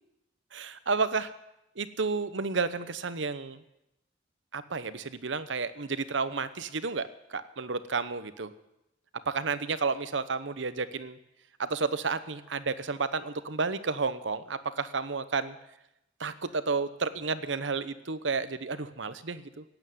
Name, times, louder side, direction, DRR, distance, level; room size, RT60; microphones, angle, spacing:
voice 1, 0.5-1.3 1.8-3.6 4.5-8.5 9.3-11.2 11.6-15.6 16.2-19.6, right 4 dB, 80° right, 13 dB, 1.0 m, -31 dB
17.0 x 9.1 x 9.3 m, 0.88 s
head